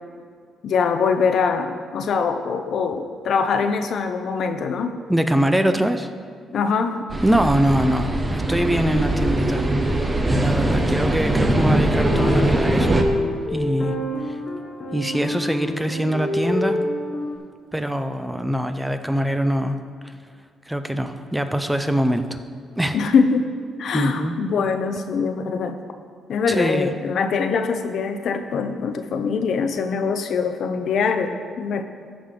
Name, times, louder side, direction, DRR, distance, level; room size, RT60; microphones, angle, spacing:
voice 1, 0.6-5.0 6.5-7.1 22.9-23.5 23.8-25.8 26.3-31.8, left 5 dB, 65° left, 7 dB, 0.6 m, -23 dB
voice 2, 5.1-6.1 7.2-9.7 10.4-13.0 13.5-14.0 14.2-14.4 14.9-16.8 17.7-19.8 20.0-20.1 20.7-22.4 22.8-23.0 23.9-24.3 26.5-26.9, right 1 dB, 5° right, 8 dB, 0.6 m, -23 dB
sound 1, 7.1-13.0, right 1 dB, 20° right, 0.9 m, -21 dB
sound 2, 12.1-17.4, left 1 dB, 45° left, 1.1 m, -27 dB
14.5 x 5.1 x 3.8 m, 2.1 s
cardioid pair, 90°, 0 cm